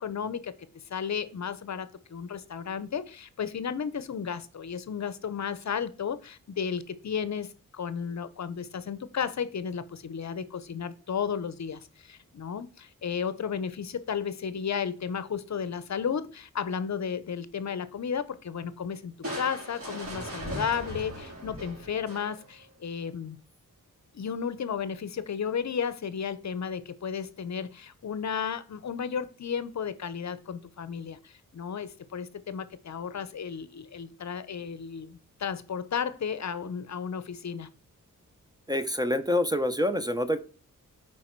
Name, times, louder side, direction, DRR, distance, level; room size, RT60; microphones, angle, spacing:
voice 1, 0.0-23.4 24.1-37.7, left 7 dB, 55° left, 0.7 m, -33 dB
Crushing, 19.2-22.6, equal, 45° right, 3.9 m, -38 dB
voice 2, 38.7-40.4, left 1 dB, 10° right, 0.6 m, -26 dB
11.5 x 4.7 x 4.5 m
wide cardioid pair, 155°, 33 cm